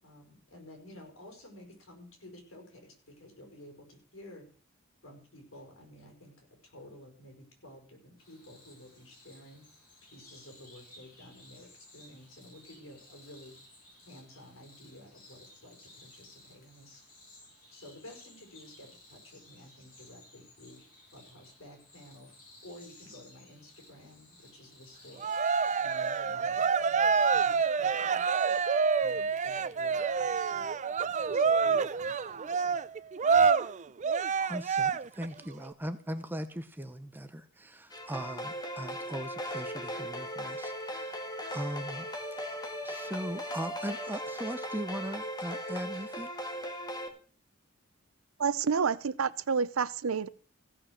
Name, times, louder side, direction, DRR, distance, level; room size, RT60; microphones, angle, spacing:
voice 1, 0.0-4.5 5.0-9.7 10.1-13.5 14.1-17.0 17.7-20.8 21.1-22.3 22.6-25.3 25.8-28.2 29.0-30.7 31.0-32.8, left 1 dB, 70° left, 5.3 m, -52 dB
sound 1, 8.2-26.3, left 2 dB, 45° left, 6.3 m, -57 dB
Cheering, 25.2-35.3, right 5 dB, 35° right, 0.5 m, -27 dB
voice 2, 34.4-41.2 41.5-42.1 42.5-46.3, equal, 10° right, 0.7 m, -39 dB
sound 2, 37.9-47.1, equal, 20° left, 1.7 m, -38 dB
voice 3, 48.4-50.3, right 6 dB, 90° right, 0.6 m, -29 dB
15.5 x 6.4 x 6.5 m
head